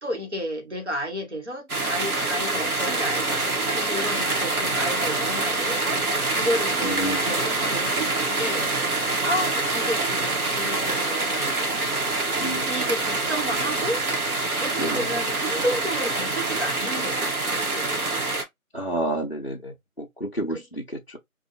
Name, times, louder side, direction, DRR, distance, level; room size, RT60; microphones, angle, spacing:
voice 1, 0.0-11.6 12.7-14.0 14.4-18.2 20.5-20.6, equal, 50° right, 1.0 m, -32 dB
sound 1, 1.7-18.4, right 2 dB, 85° right, 1.1 m, -25 dB
voice 2, 6.8-7.3 12.4-12.7 14.8-15.0 18.7-21.2, right 1 dB, 45° left, 0.5 m, -30 dB
2.7 x 2.2 x 2.6 m
figure-of-eight pair, 180°, 43 cm